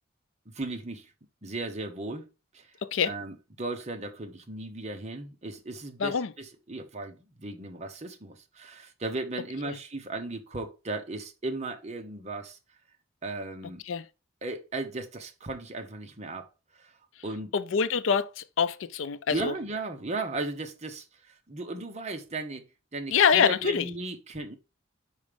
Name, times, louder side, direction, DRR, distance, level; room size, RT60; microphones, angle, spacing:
voice 1, 0.5-1.1 1.4-2.3 2.5-2.7 3.1-12.6 13.2-13.8 14.4-16.5 16.8-16.9 17.2-17.5 19.3-22.6 22.9-24.6, right 2 dB, 35° right, 1.0 m, -36 dB
voice 2, 2.8-3.1 6.0-6.3 9.7-9.8 13.9-14.0 17.5-19.5 23.1-23.9, left 6 dB, 75° left, 0.5 m, -25 dB
5.2 x 5.0 x 5.1 m
head